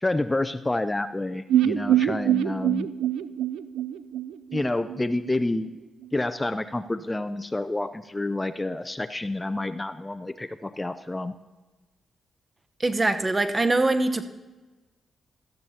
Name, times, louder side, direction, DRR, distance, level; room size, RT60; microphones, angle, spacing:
voice 1, 0.0-2.9 4.5-5.7 6.1-11.3, left 2 dB, 20° left, 11 dB, 0.5 m, -28 dB
sound 1, 1.5-5.4 5.6-5.7 6.0-6.1, right 11 dB, 85° right, 0.3 m, -25 dB
voice 2, 12.8-14.2, right 2 dB, 30° right, 8 dB, 0.9 m, -23 dB
17.0 x 13.5 x 2.8 m, 1.2 s
supercardioid pair, 60°, 0 cm